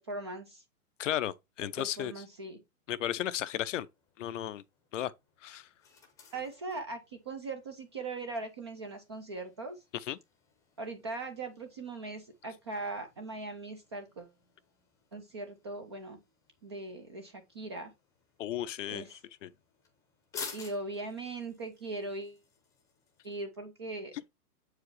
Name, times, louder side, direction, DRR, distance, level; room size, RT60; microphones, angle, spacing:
voice 1, 0.1-0.6 1.6-2.6 6.3-9.8 10.8-14.3 15.1-16.2 16.6-17.9 18.9-19.2 20.5-22.4 23.2-24.1, right 2 dB, 20° right, 0.4 m, -40 dB
voice 2, 1.0-2.1 2.9-3.9 4.2-4.6 4.9-5.1 5.4-5.7 10.1-10.2 18.4-19.0 19.4-19.5, left 11 dB, 55° left, 0.5 m, -34 dB
sound 1, 3.9-23.4, left 5 dB, 5° left, 0.8 m, -53 dB
7.6 x 4.8 x 3.1 m
hypercardioid pair, 150°, 45 cm